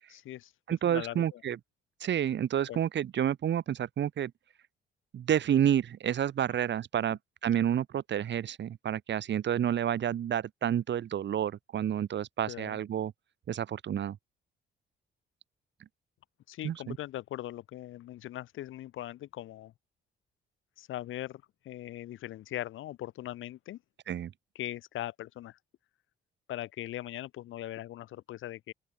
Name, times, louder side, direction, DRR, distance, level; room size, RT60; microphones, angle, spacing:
voice 1, 0.1-0.5 0.8-1.4 2.7-2.8 12.5-12.8 16.5-19.7 20.8-23.8 24.5-25.6 26.5-28.7, left 14 dB, 80° left, 5.1 m, -40 dB
voice 2, 0.7-1.6 2.0-4.3 5.1-13.1 13.5-14.2 16.6-17.0 24.1-24.3, right 10 dB, 65° right, 4.7 m, -29 dB
open air
cardioid pair, 90°, 20 cm